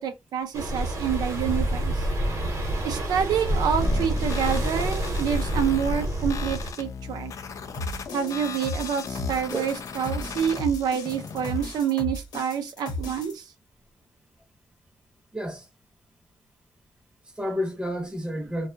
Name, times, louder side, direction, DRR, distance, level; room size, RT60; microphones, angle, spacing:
voice 1, 0.0-2.1 2.8-7.3 8.1-13.5, right 8 dB, 85° right, 0.4 m, -27 dB
sound 1, 0.5-6.7, right 1 dB, 50° right, 1.0 m, -27 dB
sound 2, 3.8-11.8, left 5 dB, 50° left, 0.4 m, -38 dB
sound 3, 7.7-13.3, left 2 dB, 75° left, 0.9 m, -35 dB
voice 2, 15.3-15.7 17.2-18.7, equal, 10° right, 0.8 m, -31 dB
2.7 x 2.2 x 2.6 m
cardioid pair, 125°, 7 cm